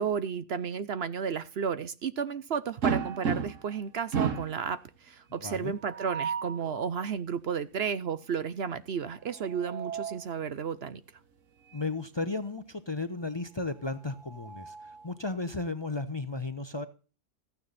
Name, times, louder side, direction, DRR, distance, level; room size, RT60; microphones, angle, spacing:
voice 1, 0.0-11.0, right 6 dB, 60° right, 0.9 m, -33 dB
sound 1, 2.8-3.8 4.1-4.6 5.8-6.6 9.2-10.3 11.7-11.9 12.2-12.3 13.9-15.1, right 6 dB, 75° right, 1.6 m, -33 dB
voice 2, 5.4-5.7 11.7-16.9, left 3 dB, 25° left, 0.7 m, -34 dB
14.5 x 9.4 x 4.1 m
omnidirectional pair, 1.3 m